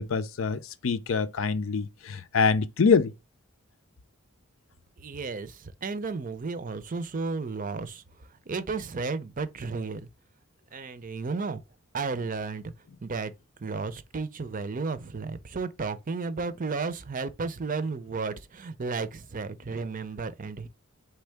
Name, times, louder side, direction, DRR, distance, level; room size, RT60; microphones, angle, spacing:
voice 1, 0.0-3.1, left 5 dB, 75° left, 0.5 m, -25 dB
voice 2, 5.0-5.6 5.8-8.0 8.5-10.1 10.7-11.6 11.9-12.6 13.0-13.3 13.6-20.7, right 4 dB, 40° right, 0.5 m, -33 dB
4.4 x 3.5 x 3.5 m
head